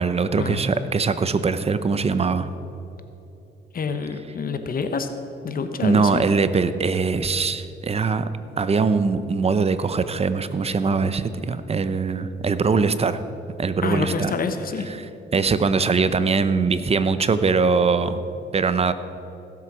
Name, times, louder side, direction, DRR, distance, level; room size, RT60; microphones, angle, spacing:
voice 1, 0.0-2.5 5.8-8.3 8.6-13.2 13.6-14.3 15.3-18.2 18.5-18.9, right 4 dB, 30° right, 12 dB, 0.7 m, -22 dB
voice 2, 3.7-5.1 5.4-6.3 13.8-14.9, left 5 dB, 45° left, 8 dB, 1.0 m, -27 dB
16.5 x 7.8 x 6.2 m, 3.0 s
cardioid pair, 90°, 20 cm